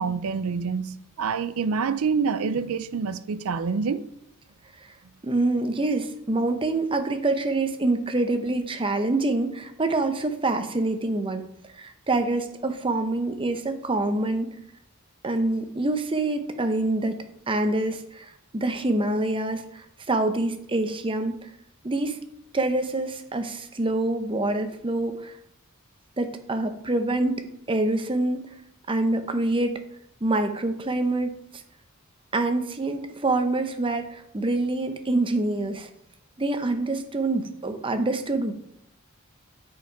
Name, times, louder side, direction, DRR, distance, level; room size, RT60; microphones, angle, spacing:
voice 1, 0.0-4.1, right 5 dB, 75° right, 0.5 m, -27 dB
voice 2, 5.2-11.4 11.8-14.5 15.2-21.5 21.8-22.2 22.5-25.4 26.2-27.4 27.7-28.4 28.9-29.8 30.2-31.6 32.3-35.9 36.4-38.5, right 2 dB, 25° right, 0.7 m, -26 dB
8.2 x 4.7 x 4.7 m
head